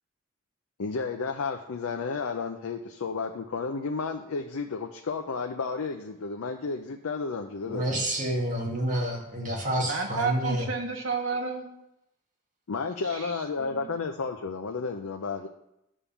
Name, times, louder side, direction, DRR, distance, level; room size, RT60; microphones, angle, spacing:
voice 1, 0.8-7.9 12.7-15.5, left 4 dB, 80° left, 5 dB, 0.5 m, -32 dB
voice 2, 7.7-10.7, right 1 dB, 35° right, -1 dB, 1.7 m, -29 dB
voice 3, 9.8-11.7 13.1-13.3 13.6-13.9, right 4 dB, 70° right, 2 dB, 1.0 m, -31 dB
9.8 x 3.6 x 7.0 m, 0.85 s
head